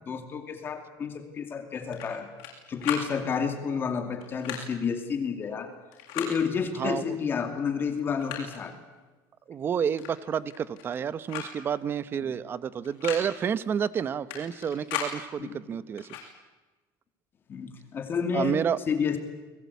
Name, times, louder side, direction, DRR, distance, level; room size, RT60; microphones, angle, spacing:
voice 1, 0.1-2.3 2.7-5.7 6.1-8.7 12.2-12.3 15.4-15.5 17.5-18.6 18.9-19.2, left 6 dB, 25° left, 6 dB, 2.5 m, -30 dB
sound 1, 1.9-2.5 2.8-3.1 4.2-4.6 5.9-6.3 7.4-7.5 7.9-8.6 10.0-10.1 10.4-11.0 11.3-11.5 11.8-11.9 12.8-13.2 14.3-15.1 16.0-16.3, left 9 dB, 75° left, 7.3 m, -36 dB
voice 2, 9.5-16.1 18.3-18.8, right 7 dB, 25° right, 16 dB, 0.8 m, -29 dB
29.5 x 22.0 x 8.4 m, 1.2 s
cardioid pair, 170°, 8 cm